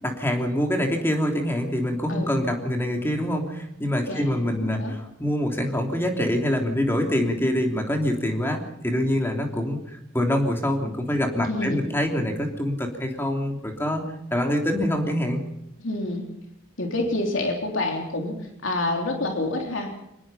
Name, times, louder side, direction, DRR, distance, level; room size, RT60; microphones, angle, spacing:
voice 1, 0.0-14.0 14.3-15.4, left 1 dB, 10° left, 2 dB, 3.2 m, -25 dB
voice 2, 4.1-4.9 11.4-11.8 15.8-16.2 16.8-18.4 18.6-19.9, left 2 dB, 65° left, 2 dB, 3.3 m, -27 dB
24.5 x 20.0 x 5.7 m, 0.83 s
head